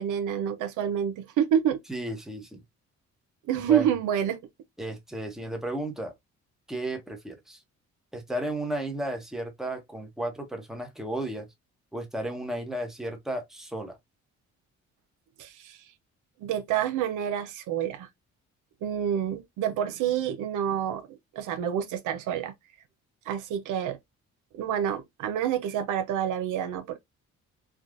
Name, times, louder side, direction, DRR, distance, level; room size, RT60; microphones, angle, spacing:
voice 1, 0.0-1.8 3.5-4.4 15.4-15.8 16.4-18.1 18.8-22.5 23.3-24.0 24.5-27.0, right 9 dB, 80° right, 0.6 m, -28 dB
voice 2, 1.9-2.6 3.7-3.9 4.8-6.1 6.7-7.6 8.1-11.5 11.9-14.0, right 1 dB, ahead, 0.9 m, -33 dB
3.4 x 2.3 x 2.4 m
cardioid pair, 90°, 30 cm